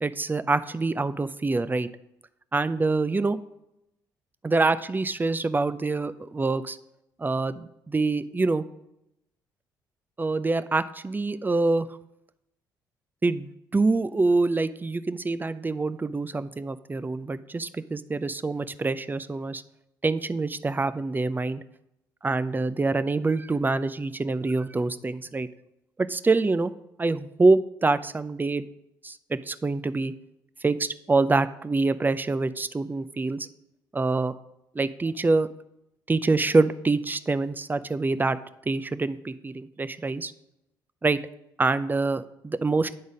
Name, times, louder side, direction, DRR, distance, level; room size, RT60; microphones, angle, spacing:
voice 1, 0.0-1.9 2.5-3.4 4.4-6.8 7.2-8.6 10.2-11.9 13.2-19.6 20.0-21.6 22.2-25.5 26.1-26.7 27.0-28.6 29.0-30.1 30.6-33.5 33.9-34.3 34.7-35.5 36.1-38.4 38.7-40.3 41.0-41.2 41.6-43.0, right 3 dB, 20° right, 13 dB, 0.5 m, -25 dB
9.6 x 4.0 x 5.0 m, 0.84 s
hypercardioid pair, 50°, 10 cm